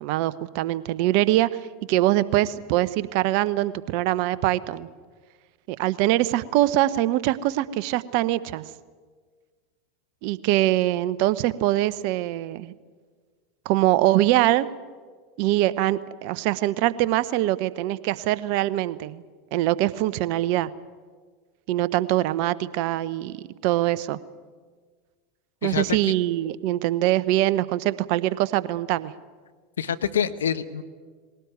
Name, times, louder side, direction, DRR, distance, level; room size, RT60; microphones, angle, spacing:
voice 1, 0.0-1.6 1.9-4.9 5.7-8.6 10.2-12.7 13.6-14.7 15.4-19.2 19.5-20.7 21.7-24.2 25.6-29.1, right 15 dB, 60° right, 16 dB, 0.9 m, -23 dB
voice 2, 29.8-30.8, left 8 dB, 85° left, 12 dB, 1.1 m, -26 dB
21.0 x 18.0 x 9.4 m, 1.5 s
hypercardioid pair, 90°, 0 cm